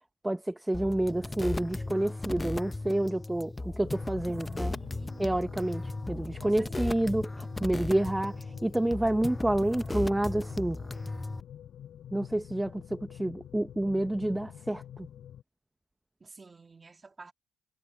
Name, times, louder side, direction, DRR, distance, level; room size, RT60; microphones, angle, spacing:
voice 1, 0.2-4.7 5.2-10.8 12.1-15.1, right 1 dB, 10° right, 0.9 m, -29 dB
sound 1, 0.7-11.4, left 2 dB, 15° left, 0.6 m, -36 dB
sound 2, 3.8-15.4, left 10 dB, 60° left, 4.0 m, -47 dB
voice 2, 4.6-5.3 6.4-6.9 16.2-17.3, right 3 dB, 25° right, 2.6 m, -50 dB
cardioid pair, 120°, 0 cm